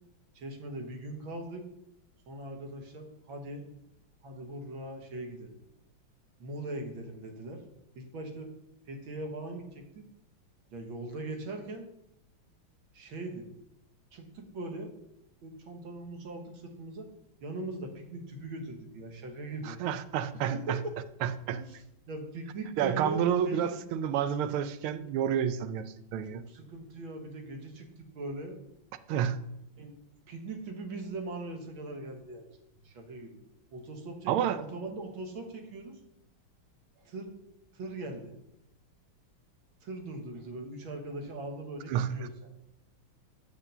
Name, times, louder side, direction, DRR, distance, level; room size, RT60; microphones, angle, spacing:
voice 1, 0.4-1.6 2.3-3.6 4.2-5.6 6.4-7.6 8.0-8.5 8.9-10.0 10.7-11.9 12.9-13.5 14.1-14.9 15.4-17.1 17.4-19.8 20.5-20.9 21.5-23.8 26.2-28.6 29.8-29.9 30.3-32.5 32.8-33.4 33.7-36.0 37.0-37.3 37.7-38.3 39.8-42.3, right 2 dB, 70° right, 3 dB, 2.0 m, -40 dB
voice 2, 19.6-20.8 21.2-21.6 22.8-26.4 29.1-29.4 34.3-34.6 41.9-42.3, right 9 dB, 85° right, 13 dB, 1.5 m, -30 dB
6.7 x 6.0 x 6.7 m, 0.81 s
omnidirectional pair, 2.3 m